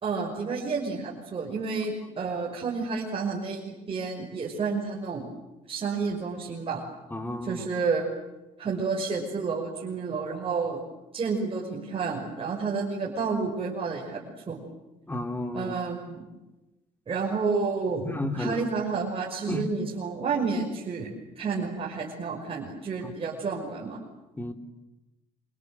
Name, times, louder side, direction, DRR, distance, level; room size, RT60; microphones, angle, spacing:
voice 1, 0.0-5.3 5.7-6.8 7.4-8.1 8.6-10.8 11.1-14.6 15.5-16.2 17.1-24.0, right 4 dB, 35° right, -2 dB, 5.9 m, -30 dB
voice 2, 7.1-7.7 15.1-15.7 18.0-18.6 19.5-19.7 23.0-23.1 24.4-24.5, left 1 dB, 10° left, 6 dB, 3.4 m, -32 dB
28.5 x 26.0 x 7.8 m, 1.0 s
cardioid pair, 110°, 17 cm